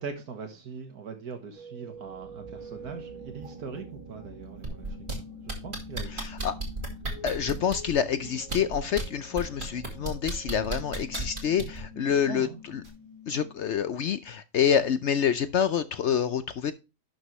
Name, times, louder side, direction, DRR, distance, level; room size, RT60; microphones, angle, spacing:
voice 1, 0.0-6.5 7.1-7.2 10.6-10.8 11.9-12.6 13.3-13.4, right 5 dB, 75° right, 1.8 m, -42 dB
sound 1, 1.5-13.5, left 1 dB, 30° left, 4.8 m, -47 dB
sound 2, 1.9-11.0, right 4 dB, 60° right, 1.6 m, -49 dB
sound 3, 4.6-5.1 5.5-7.9 8.4-9.0 9.4-11.8 12.8-12.9, right 3 dB, 35° right, 2.3 m, -33 dB
voice 2, 6.1-6.5 7.2-12.8 13.3-16.7, left 8 dB, 65° left, 0.7 m, -27 dB
11.5 x 6.3 x 3.1 m
omnidirectional pair, 1.6 m